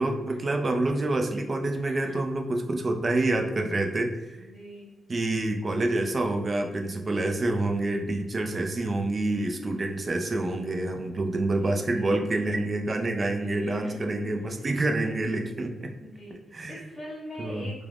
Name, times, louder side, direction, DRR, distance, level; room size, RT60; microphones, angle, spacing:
voice 1, 0.0-4.4 5.1-15.9 16.5-16.8 17.4-17.7, right 2 dB, 30° right, 3 dB, 0.4 m, -27 dB
voice 2, 4.4-4.9 11.6-12.3 13.4-14.0 14.4-14.6 16.0-16.3 16.7-17.9, equal, 20° left, -8 dB, 0.7 m, -42 dB
3.3 x 2.0 x 2.4 m, 1.1 s
wide cardioid pair, 130°, 0 cm